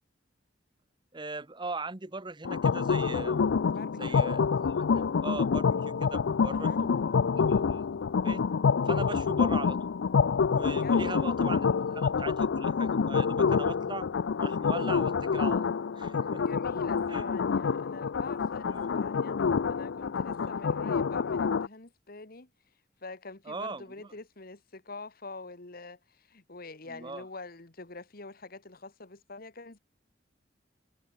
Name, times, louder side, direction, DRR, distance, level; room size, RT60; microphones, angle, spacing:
voice 1, 1.1-3.5 4.0-7.9 8.2-8.4 8.8-9.9 10.5-14.1 14.4-16.4 17.1-17.3 18.7-18.9 20.4-20.5 23.4-23.8 26.9-27.3, right 3 dB, 25° right, 1.4 m, -40 dB
sound 1, 2.4-21.7, left 5 dB, 75° left, 0.4 m, -27 dB
voice 2, 3.7-4.2 6.5-6.8 10.7-11.5 16.4-19.4 19.7-22.5 23.0-29.8, left 3 dB, 50° left, 1.9 m, -45 dB
head